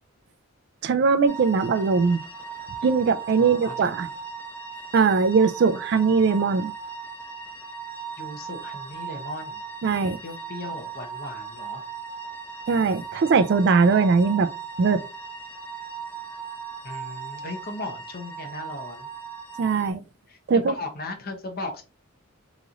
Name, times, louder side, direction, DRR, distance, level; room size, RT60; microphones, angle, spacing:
voice 1, 0.8-2.2 2.8-4.1 4.9-6.7 9.8-10.2 12.7-14.5 14.8-15.0 19.6-20.0 20.5-20.7, right 5 dB, 50° right, 0.3 m, -20 dB
sound 1, 1.3-19.9, right 6 dB, 10° left, 0.5 m, -38 dB
voice 2, 3.4-3.9 8.2-9.6 10.2-11.8 16.8-19.1 20.3-21.8, left 2 dB, 45° left, 0.7 m, -37 dB
3.9 x 3.0 x 2.4 m
head